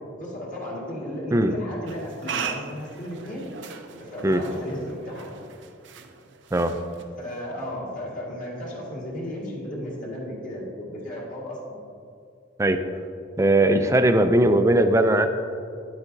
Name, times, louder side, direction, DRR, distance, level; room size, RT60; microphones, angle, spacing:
voice 1, 0.2-3.5 4.0-5.3 7.2-11.8, left 1 dB, 45° left, -5 dB, 1.8 m, -34 dB
sound 1, 1.9-7.5, right 6 dB, 70° right, 0.5 m, -38 dB
voice 2, 13.4-15.3, right 1 dB, 15° right, 8 dB, 0.4 m, -19 dB
9.8 x 8.1 x 2.7 m, 2.4 s
head